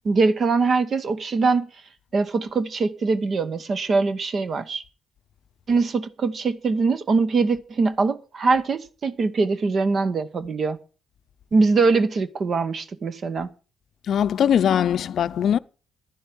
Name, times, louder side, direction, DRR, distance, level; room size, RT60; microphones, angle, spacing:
voice 1, 0.0-1.7 2.1-4.8 5.7-10.8 11.5-13.5, right 4 dB, 45° right, 1.0 m, -22 dB
voice 2, 14.1-15.6, left 9 dB, 65° left, 0.5 m, -21 dB
11.0 x 10.5 x 5.3 m
cardioid pair, 90°, 0 cm